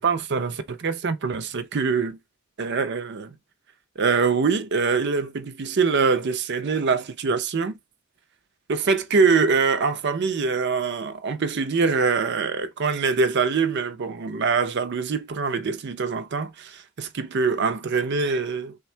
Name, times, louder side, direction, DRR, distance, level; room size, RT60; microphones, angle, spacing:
voice 1, 0.0-2.2 2.6-3.4 4.0-7.8 8.7-18.8, right 5 dB, 55° right, 0.5 m, -24 dB
3.5 x 2.2 x 4.3 m
head